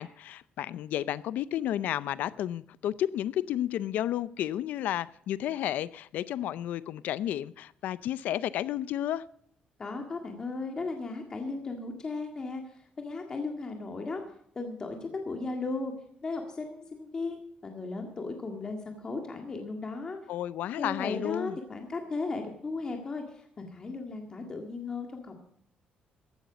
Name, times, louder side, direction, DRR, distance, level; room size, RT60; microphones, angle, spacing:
voice 1, 0.0-9.2 20.3-21.5, left 12 dB, 80° left, 17 dB, 0.5 m, -32 dB
voice 2, 9.8-14.2 14.5-15.9 16.2-20.2 20.8-25.4, left 3 dB, 25° left, 3 dB, 1.8 m, -36 dB
15.5 x 12.0 x 5.0 m, 0.69 s
cardioid pair, 165°, 3 cm